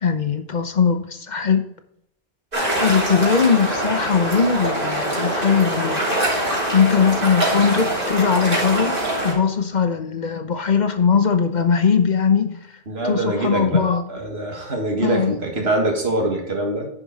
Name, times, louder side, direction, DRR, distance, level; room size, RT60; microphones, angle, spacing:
voice 1, 0.0-1.6 2.7-6.1 6.7-9.0 9.2-12.6 13.0-14.0 15.0-15.4, left 6 dB, 50° left, 8 dB, 0.8 m, -20 dB
sound 1, 2.5-9.3, right 1 dB, 60° right, 3.2 m, -23 dB
voice 2, 12.9-13.8 14.1-16.9, right 2 dB, 75° right, 2 dB, 2.1 m, -23 dB
11.0 x 5.0 x 4.0 m, 0.75 s
omnidirectional pair, 1.0 m